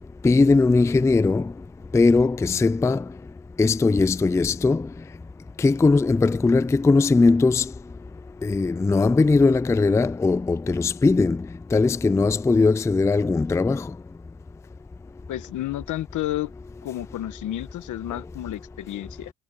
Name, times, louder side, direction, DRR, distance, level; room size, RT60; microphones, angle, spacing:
voice 1, 0.2-1.5 1.9-3.0 3.6-4.9 5.6-7.7 8.4-13.9, left 3 dB, 10° left, 0.3 m, -19 dB
voice 2, 15.3-16.5 16.8-19.3, left 14 dB, 80° left, 1.3 m, -31 dB
cardioid pair, 90°, 30 cm